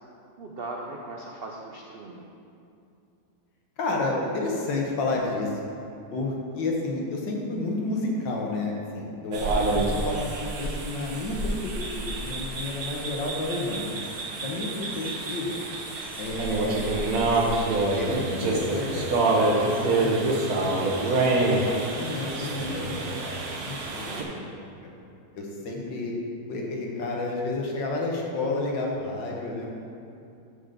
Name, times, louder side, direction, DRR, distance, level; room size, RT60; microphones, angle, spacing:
voice 1, 0.4-2.2 18.1-18.4 23.9-24.5, right 2 dB, 80° right, -1 dB, 0.5 m, -39 dB
voice 2, 3.8-5.5 6.1-13.9 14.4-15.6 16.2-16.8 17.9-20.7 21.4-23.4 23.7-23.8 24.3-24.6 25.3-26.1 26.5-29.7, left 2 dB, 80° left, -1 dB, 1.9 m, -31 dB
sound 1, 9.3-24.2, right 2 dB, 60° right, 1.4 m, -27 dB
7.6 x 5.3 x 6.6 m, 2.6 s
omnidirectional pair, 2.0 m